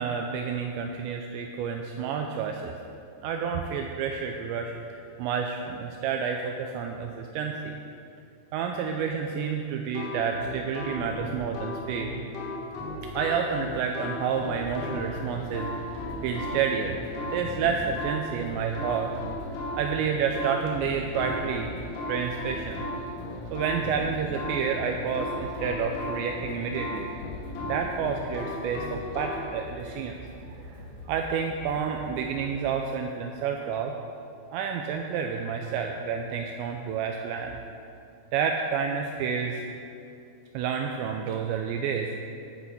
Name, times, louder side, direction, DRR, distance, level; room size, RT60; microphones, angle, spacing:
voice 1, 0.0-2.8 3.2-7.8 8.5-12.2 13.1-17.0 17.3-19.1 19.8-21.7 22.1-22.9 23.5-27.1 27.7-30.8 31.1-34.0 34.5-37.6 38.3-39.6 40.5-42.2, right 6 dB, 90° right, 3 dB, 2.5 m, -29 dB
sound 1, 9.9-29.4, left 2 dB, 80° left, 3.4 m, -36 dB
sound 2, 13.1-32.5, equal, 50° left, 1.8 m, -45 dB
11.5 x 8.0 x 4.1 m, 2.6 s
omnidirectional pair, 5.6 m